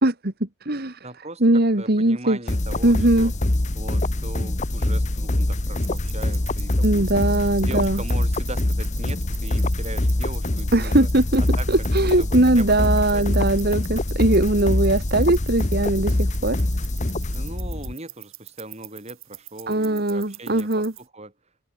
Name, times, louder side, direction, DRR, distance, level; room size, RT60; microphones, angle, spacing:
voice 1, 0.0-1.0 1.4-2.4 2.8-3.3 6.8-8.0 10.7-16.6 19.7-20.9, right 1 dB, 45° right, 1.9 m, -20 dB
voice 2, 1.0-3.3 3.7-7.2 7.6-11.1 11.5-13.6 17.3-21.3, right 2 dB, 30° right, 6.1 m, -39 dB
sound 1, 2.5-17.9, left 1 dB, 35° left, 1.2 m, -24 dB
sound 2, 5.7-21.0, right 18 dB, 70° right, 5.8 m, -45 dB
open air
head